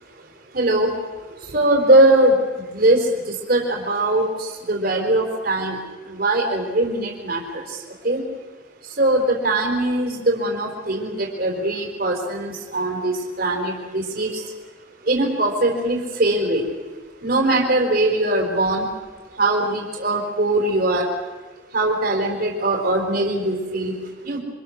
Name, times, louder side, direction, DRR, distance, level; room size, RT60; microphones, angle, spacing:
voice 1, 0.0-8.2 8.8-14.5 15.0-16.7 17.2-18.9 19.3-21.1 21.7-24.4, right 1 dB, 55° right, 0 dB, 4.4 m, -21 dB
28.5 x 25.5 x 6.6 m, 1.3 s
head